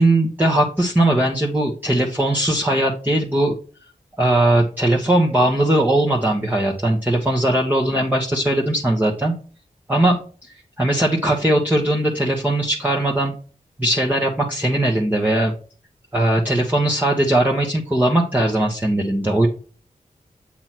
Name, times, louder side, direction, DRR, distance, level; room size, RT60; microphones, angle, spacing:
voice 1, 0.0-3.6 4.2-9.3 9.9-13.3 13.8-15.5 16.1-19.5, right 1 dB, 10° right, -1 dB, 1.2 m, -19 dB
7.9 x 2.9 x 5.9 m, 0.39 s
wide cardioid pair, 60°, 15 cm